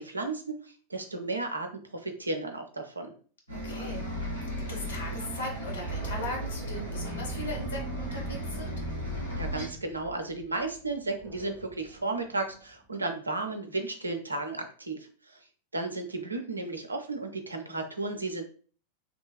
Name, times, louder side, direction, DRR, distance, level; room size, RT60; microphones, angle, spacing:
voice 1, 0.0-3.1 9.3-15.4 15.7-18.4, right 2 dB, 80° right, 5 dB, 0.4 m, -34 dB
Bus, 3.5-9.7, equal, 90° left, 0.9 m, -35 dB
voice 2, 3.5-4.1 4.4-8.8, left 2 dB, 65° left, 0 dB, 0.9 m, -39 dB
Animal, 5.8-12.9, right 2 dB, 20° right, 0.5 m, -45 dB
2.7 x 2.2 x 2.2 m, 0.42 s
figure-of-eight pair, 90°, 0 cm